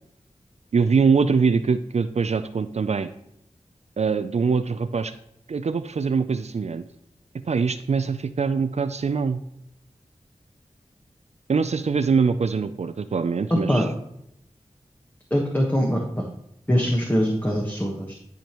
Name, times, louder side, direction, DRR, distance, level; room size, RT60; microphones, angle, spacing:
voice 1, 0.7-3.1 4.0-5.1 5.5-6.8 7.4-9.4 11.5-13.9, right 5 dB, 65° right, 10 dB, 0.4 m, -23 dB
voice 2, 13.5-13.8 15.3-16.2 16.7-18.1, equal, 15° left, 0 dB, 1.3 m, -22 dB
11.5 x 5.1 x 3.0 m, 0.75 s
wide cardioid pair, 50°, 12 cm